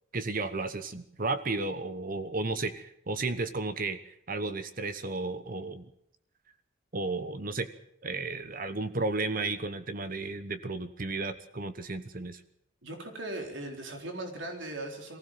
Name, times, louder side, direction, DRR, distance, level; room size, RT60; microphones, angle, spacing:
voice 1, 0.1-5.9 6.9-7.7 8.0-12.4, right 3 dB, 45° right, 11 dB, 1.1 m, -33 dB
voice 2, 12.8-15.2, right 1 dB, 70° right, 2 dB, 4.0 m, -38 dB
23.0 x 16.0 x 7.5 m, 0.73 s
head